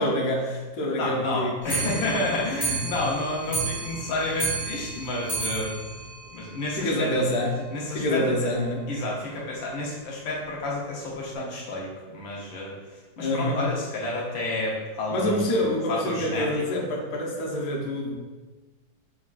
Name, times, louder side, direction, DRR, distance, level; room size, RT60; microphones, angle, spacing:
voice 1, 0.0-2.0 2.7-2.8 5.0-5.1 6.7-8.9 13.2-13.6 15.1-18.1, left 1 dB, 60° left, -3 dB, 0.9 m, -27 dB
voice 2, 1.0-5.8 6.3-7.1 7.7-8.5 8.9-12.7 13.2-15.4 15.9-16.5, left 2 dB, 80° left, -3 dB, 1.6 m, -30 dB
Clock, 1.6-7.1 7.5-7.6 7.8-7.9 8.2-8.3 8.6-8.7 9.4-9.5 10.2-10.3 11.0-11.1, right 3 dB, 35° right, 0.3 m, -32 dB
5.9 x 2.3 x 2.4 m, 1.2 s
omnidirectional pair, 2.1 m